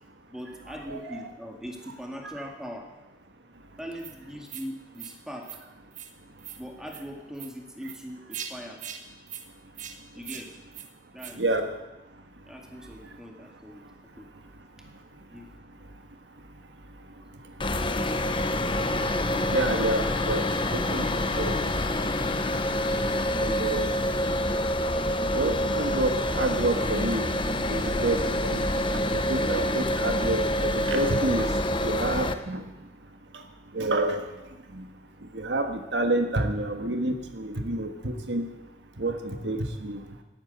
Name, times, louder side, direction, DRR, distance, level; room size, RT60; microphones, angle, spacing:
voice 1, 0.3-2.9 3.8-5.5 6.6-8.8 10.1-10.6 11.1-11.4 12.4-13.8 14.2-14.3 15.3-15.5, equal, 5° right, 1 dB, 2.1 m, -41 dB
voice 2, 0.9-1.3 11.4-11.7 19.5-20.4 20.7-21.6 22.2-22.3 23.3-23.9 25.3-27.3 27.7-28.6 28.9-31.5 31.8-32.6 33.7-34.2 34.7-34.9 35.3-38.5 39.0-40.0, right 2 dB, 75° right, 5 dB, 1.6 m, -28 dB
sound 1, 4.0-4.1 4.5-4.7 4.9-5.1 5.4-5.6 5.9-6.1 6.4-6.6 6.9-7.0 7.3-7.5 7.8-8.0 8.3-8.5 8.8-9.0 9.3-9.4 9.7-9.9 10.2-10.4 10.7-10.9 11.2-11.3, right 9 dB, 45° right, 1.4 m, -40 dB
sound 2, 17.6-32.3, left 1 dB, 30° left, 0.9 m, -27 dB
17.5 x 9.6 x 8.0 m, 1.0 s
head